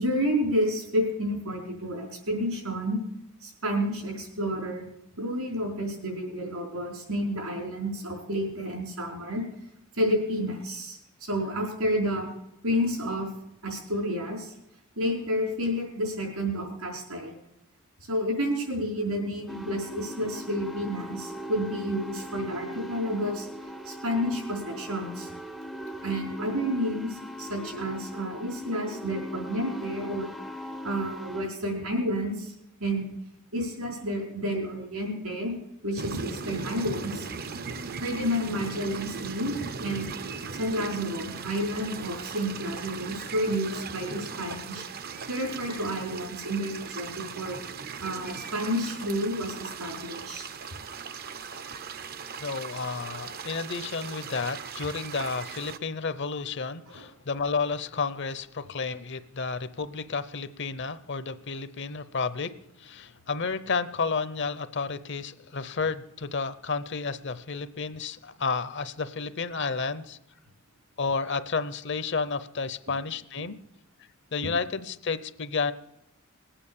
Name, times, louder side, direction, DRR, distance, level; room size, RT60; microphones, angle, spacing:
voice 1, 0.0-3.0 3.4-4.8 5.2-9.4 9.9-12.3 12.6-13.3 13.6-14.5 15.0-17.4 18.1-23.5 23.8-25.3 26.0-30.3 30.8-32.5 32.8-33.1 33.5-35.5 35.8-37.3 38.0-40.1 40.6-44.8 45.3-47.6 48.0-50.5 56.9-57.0, equal, 80° right, 1 dB, 4.8 m, -30 dB
sound 1, 19.5-31.5, equal, ahead, 0.5 m, -40 dB
sound 2, 36.0-55.8, right 5 dB, 45° right, 0.6 m, -38 dB
voice 2, 52.4-62.5 62.8-70.2 71.0-73.6 74.3-75.7, left 4 dB, 50° left, 14 dB, 0.7 m, -31 dB
20.0 x 8.8 x 7.2 m, 0.84 s
head